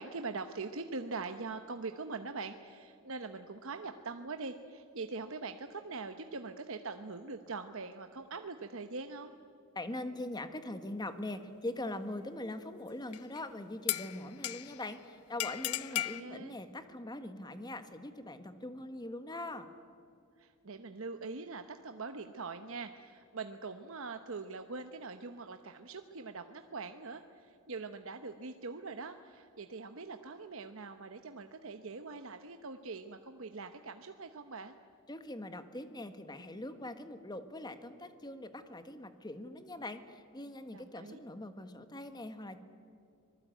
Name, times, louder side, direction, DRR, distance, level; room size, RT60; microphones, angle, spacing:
voice 1, 0.0-9.3 15.9-16.6 20.4-34.7 40.7-41.2, right 4 dB, 65° right, 7 dB, 1.0 m, -43 dB
voice 2, 9.7-19.7 35.1-42.6, left 1 dB, 20° left, 9 dB, 1.5 m, -42 dB
sound 1, 13.1-13.4 13.9-14.9 15.4-16.2, left 14 dB, 85° left, 0.7 m, -36 dB
25.5 x 19.5 x 9.1 m, 2.5 s
head